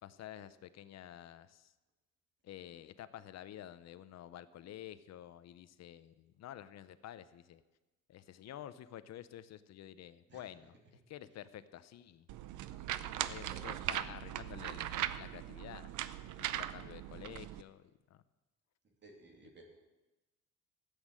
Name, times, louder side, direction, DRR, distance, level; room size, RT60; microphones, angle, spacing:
voice 1, 0.0-1.7 2.4-7.6 8.1-10.8 11.1-12.3 13.2-15.9 16.4-18.2, left 11 dB, 55° left, 14 dB, 0.7 m, -50 dB
sound 1, 12.3-17.6, right 12 dB, 70° right, 0.7 m, -39 dB
voice 2, 18.8-19.6, right 2 dB, 35° right, 1 dB, 2.7 m, -57 dB
13.5 x 8.3 x 7.5 m, 1.1 s
cardioid pair, 150°, 32 cm